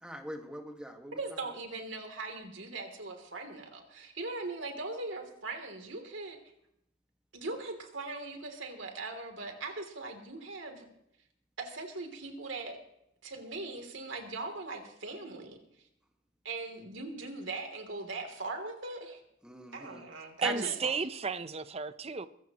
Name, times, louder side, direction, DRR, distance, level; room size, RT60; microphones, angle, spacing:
voice 1, 0.0-1.2 19.4-20.0 20.4-21.0, equal, 5° right, 1.7 m, -41 dB
voice 2, 1.2-6.4 7.3-10.9 11.6-12.8 13.2-15.6 16.4-19.2 19.7-20.7, right 3 dB, 70° right, 3.1 m, -40 dB
voice 3, 20.4-22.3, right 5 dB, 30° right, 0.7 m, -33 dB
23.0 x 14.5 x 3.1 m
head